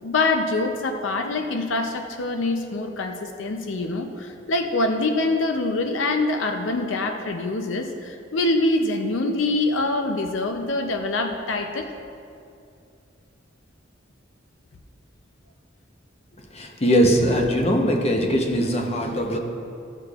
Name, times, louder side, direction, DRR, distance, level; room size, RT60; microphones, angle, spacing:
voice 1, 0.0-11.9, left 2 dB, 80° left, 5 dB, 0.6 m, -25 dB
voice 2, 16.5-19.4, equal, 35° left, 2 dB, 0.9 m, -21 dB
14.5 x 6.7 x 2.4 m, 2.5 s
head